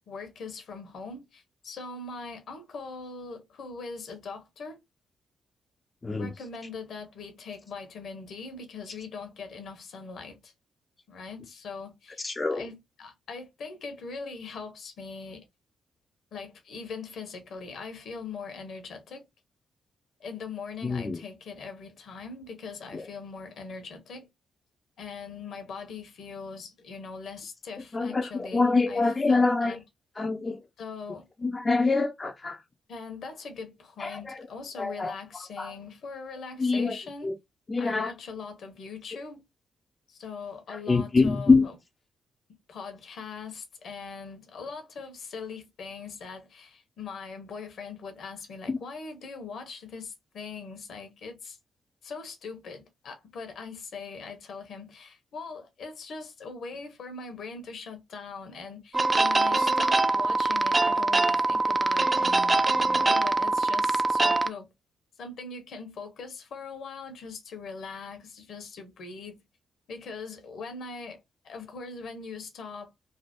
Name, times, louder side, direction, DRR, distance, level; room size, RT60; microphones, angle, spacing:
voice 1, 0.1-4.8 6.2-10.5 11.1-12.2 12.5-15.4 16.3-19.2 20.2-24.3 25.0-29.8 30.8-31.3 32.9-37.3 37.8-39.4 40.1-41.7 42.7-51.6 52.0-64.7 65.2-69.4 69.9-72.9, left 4 dB, 65° left, 0.9 m, -41 dB
voice 2, 12.2-12.7 20.8-21.2 22.9-23.1 27.9-29.8 30.2-30.6 31.4-32.6 34.0-34.5 34.8-35.1 35.6-35.7 36.6-37.0 37.2-37.4 37.7-38.1 40.7-41.7 48.7-48.8, left 3 dB, 35° left, 0.5 m, -25 dB
sound 1, 58.9-64.5, right 2 dB, 30° right, 0.4 m, -23 dB
3.3 x 2.0 x 2.9 m
hypercardioid pair, 40°, 0 cm